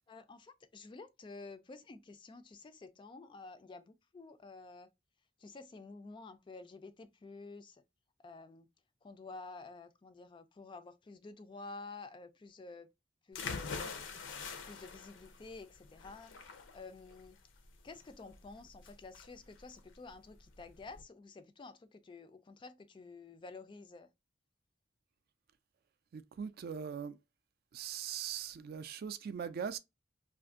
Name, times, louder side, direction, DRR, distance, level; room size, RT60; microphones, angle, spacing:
voice 1, 0.1-4.9 5.4-7.8 8.2-8.7 9.0-12.9 13.3-14.0 14.6-16.3 16.7-17.4 17.8-24.1, left 3 dB, 25° left, 0.3 m, -51 dB
sound 1, 13.3-21.0, left 5 dB, 85° left, 0.6 m, -45 dB
voice 2, 26.1-27.2 27.7-29.8, right 7 dB, 55° right, 0.3 m, -40 dB
2.5 x 2.5 x 3.5 m
head